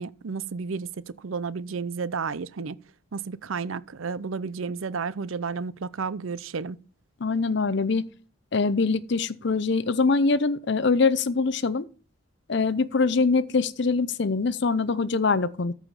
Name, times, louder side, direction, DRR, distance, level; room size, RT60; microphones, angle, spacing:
voice 1, 0.0-2.8 3.1-6.8, right 5 dB, 70° right, 0.6 m, -32 dB
voice 2, 7.2-8.1 8.5-11.9 12.5-15.7, left 4 dB, 55° left, 0.6 m, -23 dB
14.0 x 5.0 x 5.6 m
head